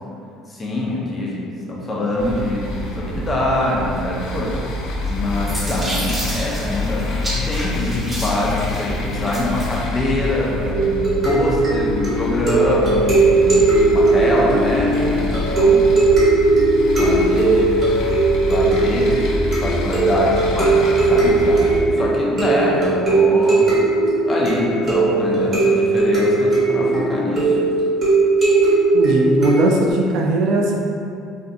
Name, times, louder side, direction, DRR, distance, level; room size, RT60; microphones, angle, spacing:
voice 1, 0.5-4.6 5.1-15.8 16.9-17.9 18.4-19.2 19.6-23.7 24.2-27.6, left 1 dB, 25° left, -4 dB, 0.6 m, -24 dB
sound 1, 2.2-21.8, left 2 dB, 70° left, 0.4 m, -27 dB
sound 2, 5.0-9.8, equal, 15° right, 1.1 m, -31 dB
sound 3, 10.7-29.9, right 3 dB, 40° right, 1.3 m, -18 dB
voice 2, 28.9-30.8, right 2 dB, 70° right, 0 dB, 0.4 m, -19 dB
2.5 x 2.5 x 2.3 m, 2.5 s
supercardioid pair, 80°, 0 cm